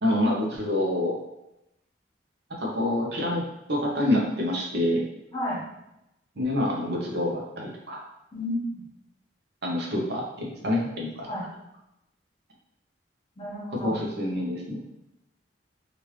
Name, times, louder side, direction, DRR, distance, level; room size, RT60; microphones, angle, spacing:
voice 1, 0.0-1.2 2.5-3.4 3.7-5.0 6.4-8.1 9.6-11.3 13.7-14.8, left 1 dB, 65° right, -2 dB, 0.7 m, -27 dB
voice 2, 8.3-8.8 11.3-11.4 13.4-13.9, left 1 dB, 30° left, -7 dB, 1.2 m, -31 dB
3.1 x 2.5 x 3.0 m, 0.87 s
head